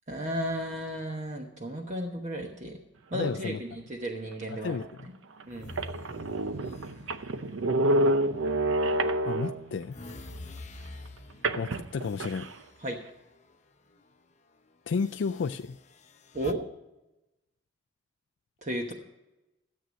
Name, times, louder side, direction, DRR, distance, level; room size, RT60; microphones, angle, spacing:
voice 1, 0.1-2.8 3.1-5.1 5.4-5.8 12.8-13.0 16.3-16.6 18.6-18.9, right 1 dB, 40° right, 3 dB, 1.1 m, -34 dB
voice 2, 3.1-3.6 4.5-5.1 9.2-10.0 11.6-12.5 14.9-15.8, left 5 dB, 65° left, 9 dB, 0.4 m, -32 dB
sound 1, 4.7-4.8 5.4-5.5 5.7-9.8 11.4-12.5, right 1 dB, 80° right, 0.7 m, -28 dB
sound 2, 5.5-8.8 9.3-13.6 13.9-14.1 14.9-16.5, left 2 dB, 35° left, 0.7 m, -48 dB
13.0 x 7.8 x 6.3 m, 0.98 s
head